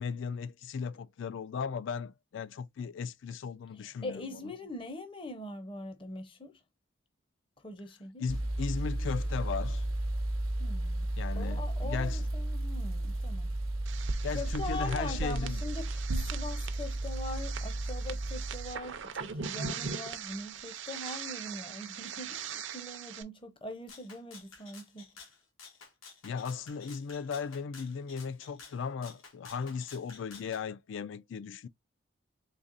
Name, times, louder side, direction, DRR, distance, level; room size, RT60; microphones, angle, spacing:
voice 1, 0.0-4.2 8.2-9.9 11.2-12.2 14.2-15.6 26.2-31.7, left 5 dB, 65° left, 0.3 m, -36 dB
voice 2, 3.7-6.6 7.6-8.3 10.6-11.1 11.3-13.5 14.3-25.1, left 2 dB, 25° left, 0.6 m, -42 dB
sound 1, 8.3-18.8, right 1 dB, 90° right, 0.8 m, -34 dB
sound 2, 13.9-23.2, right 5 dB, 65° right, 0.5 m, -39 dB
Rattle (instrument), 23.9-30.6, left 5 dB, 85° left, 1.3 m, -52 dB
4.0 x 3.2 x 2.4 m
head